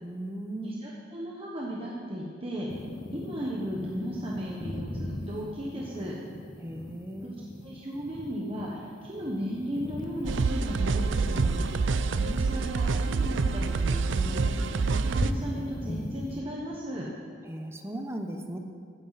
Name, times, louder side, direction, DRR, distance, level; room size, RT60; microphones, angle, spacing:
voice 1, 0.0-0.9 6.6-7.4 17.5-18.6, right 1 dB, 15° right, 5 dB, 0.8 m, -37 dB
voice 2, 0.6-2.7 3.1-6.2 7.2-7.3 7.6-17.1, equal, 30° right, -4 dB, 1.2 m, -36 dB
sound 1, 2.7-16.4, left 1 dB, 25° left, 0.8 m, -39 dB
sound 2, 10.3-15.3, right 4 dB, 80° right, 0.5 m, -27 dB
16.0 x 9.3 x 4.2 m, 2.2 s
head